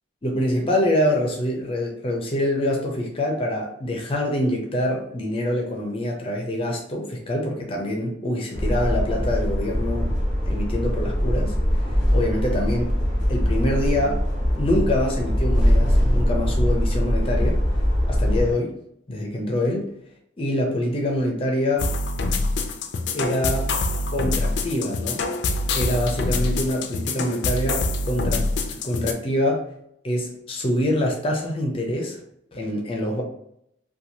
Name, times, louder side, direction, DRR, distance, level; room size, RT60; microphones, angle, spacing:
voice 1, 0.2-10.1 10.5-13.0 13.3-17.6 18.1-18.8 19.1-19.9 20.4-21.9 23.1-23.8 24.1-25.3 25.7-29.7 30.0-32.2 32.5-33.2, left 1 dB, 30° left, 1 dB, 0.5 m, -25 dB
sound 1, 8.5-18.5, equal, 5° right, 1.4 m, -22 dB
sound 2, 21.8-29.1, left 2 dB, 80° left, 0.4 m, -25 dB
3.0 x 2.3 x 2.7 m, 0.75 s
head